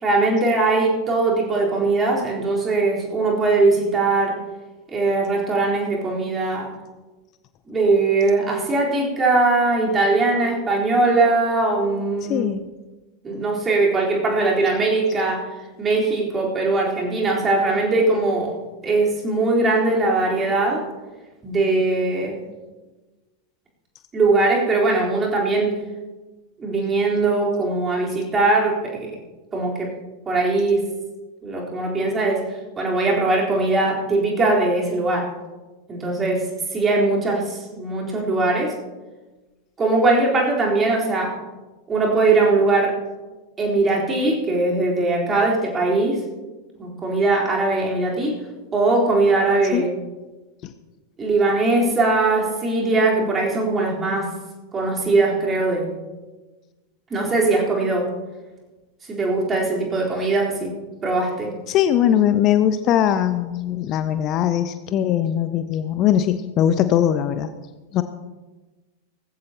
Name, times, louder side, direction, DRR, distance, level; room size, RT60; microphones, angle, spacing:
voice 1, 0.0-4.4 4.9-6.7 7.7-12.5 13.2-18.6 18.8-20.9 21.4-22.4 24.1-25.8 26.6-29.2 29.5-29.9 30.3-30.9 31.4-35.4 35.9-38.8 39.8-41.4 41.9-43.0 43.6-46.2 46.8-48.4 48.7-50.0 51.2-54.3 54.7-55.9 57.1-58.1 59.1-60.7 61.0-61.5, right 3 dB, 20° right, -3 dB, 4.1 m, -20 dB
voice 2, 12.3-12.6 49.7-49.9 61.7-67.5 67.9-68.0, left 10 dB, 35° left, 11 dB, 0.6 m, -20 dB
18.5 x 15.0 x 3.0 m, 1.2 s
figure-of-eight pair, 90°, 0 cm